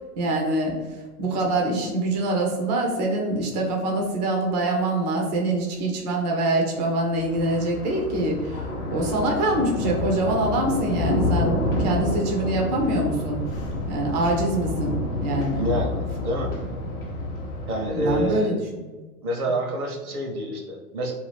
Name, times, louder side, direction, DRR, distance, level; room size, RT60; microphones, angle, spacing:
voice 1, 0.2-0.8 1.2-13.4 13.9-15.7 17.9-18.9, right 2 dB, 30° right, 0 dB, 0.5 m, -25 dB
Thunder, 7.1-18.3, left 2 dB, 30° left, 0.8 m, -28 dB
voice 2, 15.5-16.5 17.7-18.6 19.2-21.1, right 1 dB, 70° right, 1 dB, 0.9 m, -27 dB
2.6 x 2.3 x 3.3 m, 1.3 s
figure-of-eight pair, 105°, 45 cm